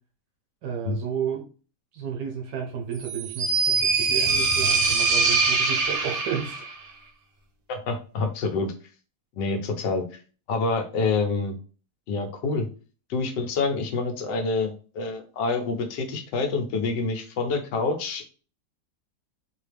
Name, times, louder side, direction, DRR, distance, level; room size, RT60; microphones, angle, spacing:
voice 1, 0.6-1.4 1.9-6.6, right 7 dB, 75° right, 2 dB, 1.3 m, -32 dB
sound 1, 3.0-6.7, right 4 dB, 55° right, 1.0 m, -23 dB
voice 2, 7.7-8.7 9.3-10.2 10.5-11.5 12.1-12.7 13.1-18.3, left 4 dB, 80° left, 4 dB, 1.4 m, -27 dB
4.0 x 2.8 x 3.3 m, 0.37 s
omnidirectional pair, 1.9 m